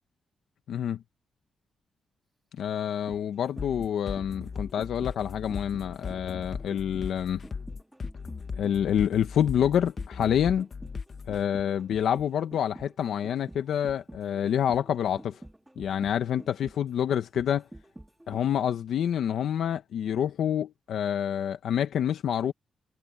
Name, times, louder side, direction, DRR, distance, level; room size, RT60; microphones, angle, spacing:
voice 1, 0.7-1.0 2.5-7.4 8.6-10.7 11.3-15.4 15.8-17.7 18.3-22.5, left 9 dB, 80° left, 1.1 m, -27 dB
sound 1, 2.8-18.7 19.0-19.1, right 1 dB, 10° right, 2.7 m, -48 dB
sound 2, 3.6-11.4, left 5 dB, 45° left, 1.2 m, -38 dB
cardioid pair, 80°, 0 cm